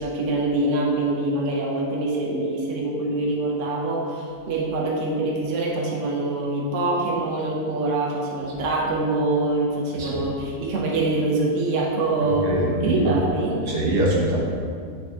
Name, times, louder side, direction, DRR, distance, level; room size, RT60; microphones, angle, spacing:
voice 1, 0.0-12.5 12.8-13.6, right 2 dB, 55° right, -2 dB, 1.0 m, -24 dB
voice 2, 12.4-13.1 13.7-14.4, right 1 dB, 75° right, -4 dB, 1.8 m, -22 dB
8.8 x 4.3 x 3.5 m, 2.2 s
omnidirectional pair, 1.8 m